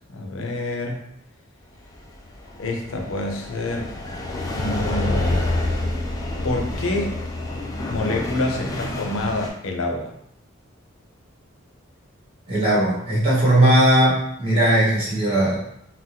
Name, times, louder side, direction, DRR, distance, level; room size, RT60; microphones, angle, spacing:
voice 1, 0.1-1.0 2.6-3.9 4.6-5.5 6.4-7.2 7.9-10.1, left 2 dB, 75° left, 2 dB, 0.5 m, -27 dB
sound 1, 1.9-9.5, left 2 dB, 15° left, 0.3 m, -27 dB
voice 2, 12.5-15.6, right 1 dB, 25° right, -7 dB, 1.2 m, -18 dB
3.8 x 2.1 x 2.7 m, 0.73 s
head